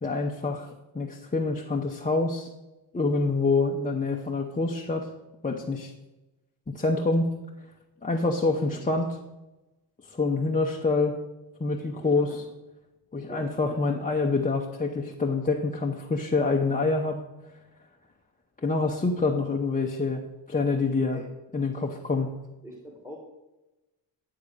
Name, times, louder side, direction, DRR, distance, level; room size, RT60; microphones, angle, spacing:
voice 1, 0.0-2.5 2.9-5.1 5.4-5.9 6.7-7.3 8.0-9.1 10.1-11.2 11.6-12.3 13.1-17.2 18.6-20.2 20.5-21.2 21.5-22.3, left 3 dB, 15° left, 0 dB, 0.8 m, -26 dB
voice 2, 11.9-12.4 13.3-13.8 19.4-19.5 21.1-21.2 22.6-23.2, left 1 dB, 5° right, -1 dB, 1.7 m, -43 dB
9.7 x 3.8 x 6.6 m, 1.0 s
cardioid pair, 70°, 48 cm